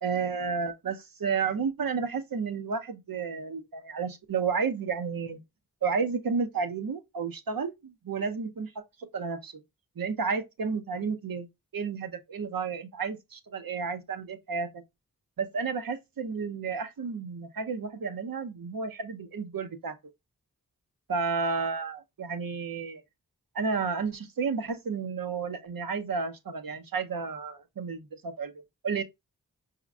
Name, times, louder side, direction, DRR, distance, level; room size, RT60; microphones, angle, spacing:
voice 1, 0.0-5.4 5.8-9.6 10.0-11.5 11.7-14.8 15.4-20.0 21.1-23.0 23.5-28.5 28.8-29.0, right 5 dB, 75° right, 0.8 m, -32 dB
5.0 x 2.9 x 2.4 m
cardioid pair, 45°, 35 cm